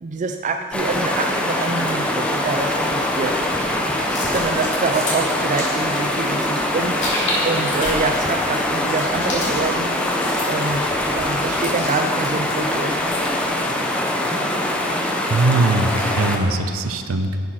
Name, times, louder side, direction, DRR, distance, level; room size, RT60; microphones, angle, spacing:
voice 1, 0.0-3.4 4.3-7.0 7.4-10.0 10.5-10.9 11.1-13.0, right 3 dB, 35° right, 6 dB, 0.4 m, -26 dB
sound 1, 0.7-16.4, left 1 dB, 5° left, 0.7 m, -23 dB
sound 2, 4.0-13.4, left 1 dB, 55° left, 2.5 m, -32 dB
voice 2, 15.3-17.4, right 2 dB, 70° right, 8 dB, 0.7 m, -20 dB
11.0 x 6.3 x 5.8 m, 2.4 s
head